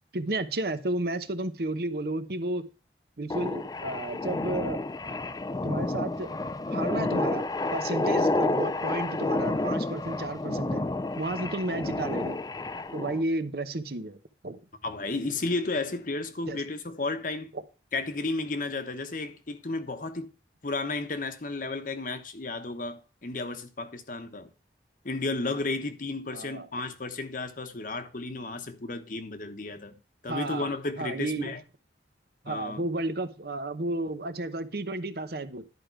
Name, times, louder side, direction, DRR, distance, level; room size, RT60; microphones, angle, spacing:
voice 1, 0.1-2.7 3.2-4.8 5.1-5.2 5.6-6.3 6.7-7.4 7.7-10.8 11.2-12.4 12.9-14.6 16.5-16.6 17.5-17.6 26.3-26.7 30.3-30.7 31.0-31.5 32.4-35.6, right 2 dB, 60° right, 0.9 m, -32 dB
sound 1, 3.3-13.2, left 2 dB, 20° left, 0.4 m, -30 dB
voice 2, 14.8-17.5 17.9-20.3 20.6-24.5 25.0-29.9 30.2-31.6 32.5-32.8, left 3 dB, 50° left, 1.0 m, -33 dB
11.0 x 5.1 x 4.5 m
head